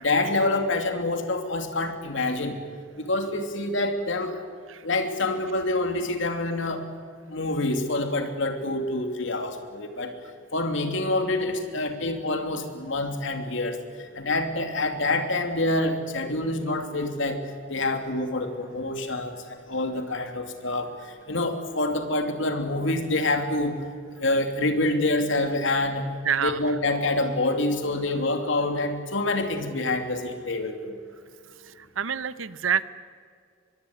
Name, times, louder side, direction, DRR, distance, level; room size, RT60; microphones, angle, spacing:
voice 1, 0.0-2.6 3.0-4.5 4.8-6.8 7.3-10.1 10.5-17.4 17.7-23.8 24.2-26.0 26.4-30.9, left 2 dB, 70° left, 5 dB, 2.9 m, -27 dB
voice 2, 26.2-26.6 32.0-32.8, right 7 dB, 80° right, 14 dB, 1.0 m, -26 dB
24.0 x 22.5 x 9.8 m, 2.2 s
head